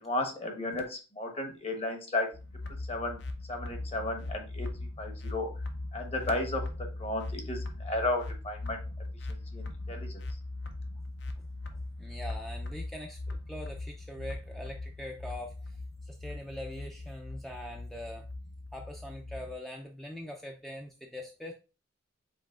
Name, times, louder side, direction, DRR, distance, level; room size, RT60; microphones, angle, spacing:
voice 1, 0.0-2.3 2.9-3.2 3.5-4.7 5.0-5.5 5.9-8.8 9.3-10.2, left 2 dB, 35° left, 4 dB, 1.0 m, -34 dB
sound 1, 2.3-19.5, left 2 dB, 60° left, 0.7 m, -40 dB
voice 2, 11.7-18.3 18.7-21.5, left 1 dB, ahead, 1 dB, 0.4 m, -43 dB
5.4 x 4.0 x 2.4 m, 0.32 s
head